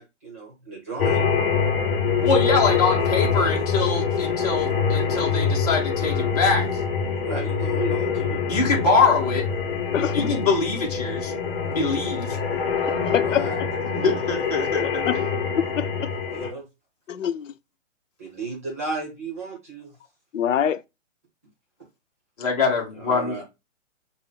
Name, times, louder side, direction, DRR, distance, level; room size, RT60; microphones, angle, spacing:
voice 1, 0.0-1.3 7.2-8.4 9.9-10.2 13.2-13.7 16.3-16.7 18.2-20.0 22.9-23.4, right 4 dB, 10° right, 0.8 m, -34 dB
sound 1, 1.0-16.5, left 6 dB, 50° left, 1.1 m, -25 dB
voice 2, 2.2-6.8 8.5-9.4 10.1-11.3 11.7-12.4 13.9-15.3 22.4-23.4, left 4 dB, 30° left, 1.7 m, -23 dB
voice 3, 9.9-10.3 12.9-13.7 14.8-15.2 15.6-16.1 16.4-16.5 17.1-17.5 20.3-20.8, left 9 dB, 85° left, 0.6 m, -25 dB
5.8 x 2.1 x 3.8 m
hypercardioid pair, 175°, 37 cm